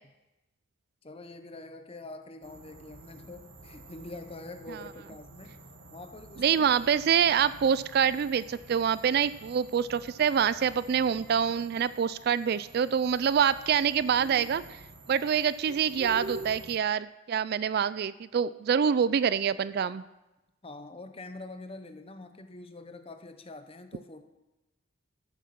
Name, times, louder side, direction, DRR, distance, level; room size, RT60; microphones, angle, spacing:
voice 1, 1.0-5.5 5.9-6.7 20.6-24.2, left 2 dB, 30° left, 8 dB, 0.8 m, -45 dB
sound 1, 2.4-16.8, right 1 dB, 75° right, 1.5 m, -47 dB
voice 2, 6.4-14.8 15.1-20.0, right 7 dB, 50° right, 17 dB, 0.3 m, -26 dB
13.5 x 7.4 x 5.9 m, 1.0 s
head